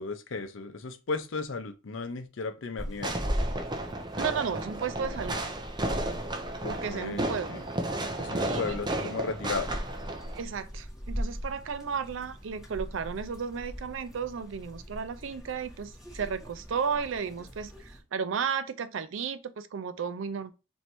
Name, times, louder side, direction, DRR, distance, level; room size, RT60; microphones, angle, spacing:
voice 1, 0.0-3.2 6.6-7.6 8.2-9.7, left 4 dB, 75° left, 0.6 m, -35 dB
sound 1, 2.8-18.0, equal, 5° right, 1.6 m, -40 dB
Fireworks, 3.0-10.4, right 1 dB, 25° right, 0.6 m, -33 dB
voice 2, 4.2-5.4 6.7-7.6 8.4-9.1 10.3-20.5, right 6 dB, 75° right, 0.4 m, -34 dB
3.1 x 2.7 x 4.4 m
head